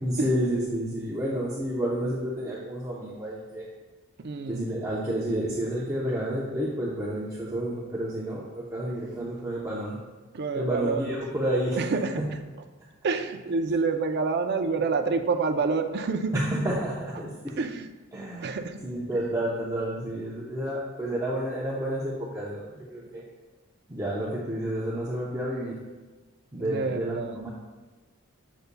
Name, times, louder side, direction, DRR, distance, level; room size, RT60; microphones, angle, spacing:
voice 1, 0.0-3.7 4.5-10.0 10.5-11.8 12.2-12.3 16.3-17.5 18.1-23.2 23.9-25.7 26.5-27.5, right 1 dB, 15° right, -6 dB, 0.7 m, -30 dB
voice 2, 4.2-4.8 10.3-11.1 11.8-12.3 13.0-16.5 17.6-17.9 18.4-18.8 26.6-27.4, right 4 dB, 50° right, 7 dB, 0.5 m, -28 dB
8.2 x 6.6 x 2.2 m, 1.3 s
head